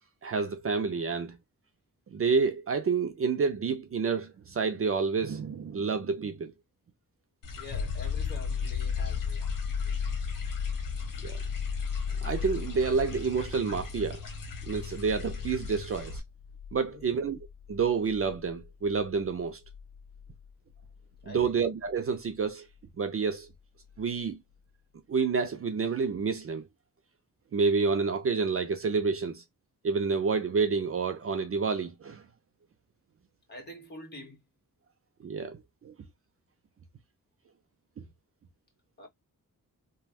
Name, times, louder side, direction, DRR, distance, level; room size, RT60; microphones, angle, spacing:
voice 1, 0.2-1.4 2.1-6.5 11.2-11.4 12.2-14.2 14.6-16.2 16.7-17.4 17.7-19.6 21.3-22.7 23.0-23.5 24.0-24.4 25.1-26.7 27.5-29.4 29.8-32.2 35.2-35.6 35.8-35.9, right 5 dB, 40° right, 0.5 m, -29 dB
sound 1, 7.4-16.2, left 2 dB, 65° left, 1.0 m, -41 dB
voice 2, 7.5-9.5 16.8-17.2 21.2-21.6 33.5-34.4 39.0-39.1, left 2 dB, 30° left, 1.5 m, -46 dB
sound 2, 7.7-21.2 23.9-24.0, left 7 dB, 85° left, 0.7 m, -36 dB
3.3 x 2.3 x 2.3 m
wide cardioid pair, 105°, 34 cm